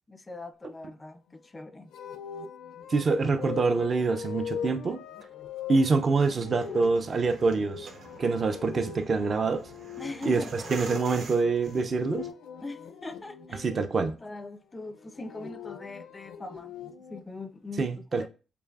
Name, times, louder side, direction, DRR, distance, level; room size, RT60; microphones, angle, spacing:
voice 1, 0.1-1.9 10.0-10.9 12.6-13.7 14.2-16.7 17.1-18.3, left 3 dB, 20° left, 0.3 m, -41 dB
sound 1, 1.9-13.8 15.0-17.2, left 7 dB, 85° left, 0.5 m, -41 dB
voice 2, 2.9-5.0 5.7-7.9 8.2-9.6 10.3-12.3 13.6-14.1 17.8-18.3, right 4 dB, 45° right, 0.4 m, -26 dB
sound 2, 6.1-12.3, right 4 dB, 65° right, 1.0 m, -47 dB
6.7 x 2.5 x 2.3 m
cardioid pair, 90°, 0 cm